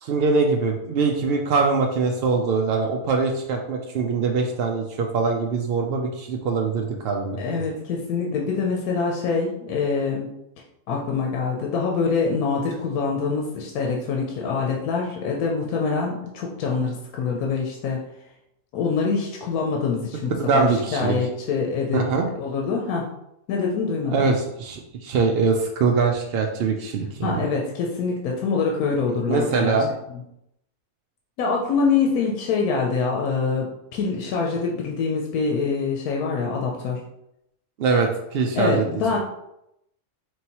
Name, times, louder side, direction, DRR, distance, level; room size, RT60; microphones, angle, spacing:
voice 1, 0.0-7.6 20.4-21.2 21.9-22.3 24.1-27.3 29.3-29.9 37.8-38.9, right 4 dB, 75° right, 2 dB, 0.5 m, -23 dB
voice 2, 7.4-10.3 10.9-18.0 18.7-22.1 22.4-23.0 23.5-24.1 27.2-29.8 31.4-37.0 38.6-39.2, left 5 dB, 85° left, -1 dB, 1.1 m, -25 dB
4.4 x 3.1 x 2.9 m, 0.81 s
omnidirectional pair, 1.5 m